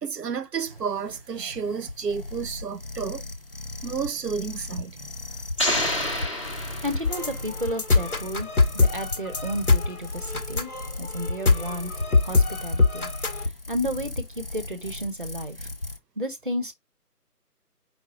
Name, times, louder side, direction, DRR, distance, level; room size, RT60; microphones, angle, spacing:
voice 1, 0.0-3.2 3.8-5.0, right 6 dB, 90° right, 0.6 m, -31 dB
sound 1, 0.6-16.0, left 2 dB, 40° left, 0.5 m, -36 dB
sound 2, 5.6-7.5, left 1 dB, 20° left, 1.0 m, -28 dB
voice 2, 6.8-10.7 11.0-11.9 12.2-15.7 16.2-16.7, equal, 35° right, 0.6 m, -32 dB
sound 3, 7.0-13.4, left 3 dB, 65° left, 1.4 m, -23 dB
4.7 x 2.7 x 3.6 m
figure-of-eight pair, 155°, 47 cm